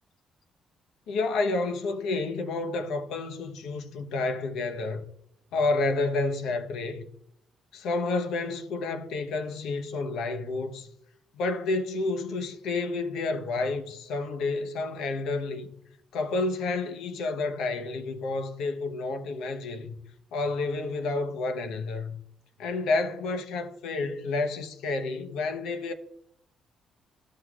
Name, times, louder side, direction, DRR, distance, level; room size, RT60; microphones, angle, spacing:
voice 1, 1.1-5.0 5.5-7.1 7.7-10.9 11.3-15.7 16.1-20.0 20.3-22.2 22.6-25.9, left 3 dB, 85° left, 0.9 m, -30 dB
14.5 x 6.3 x 2.4 m
cardioid pair, 90°, 0 cm